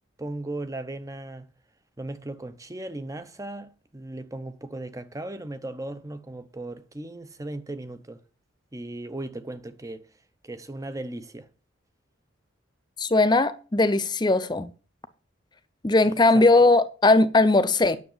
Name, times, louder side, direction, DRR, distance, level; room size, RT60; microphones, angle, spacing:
voice 1, 0.2-1.5 2.0-8.2 8.7-10.1 10.4-11.5 16.3-16.5, right 2 dB, 15° right, 0.7 m, -37 dB
voice 2, 13.0-14.7 15.8-18.0, left 2 dB, 20° left, 0.6 m, -19 dB
9.5 x 6.5 x 7.2 m
head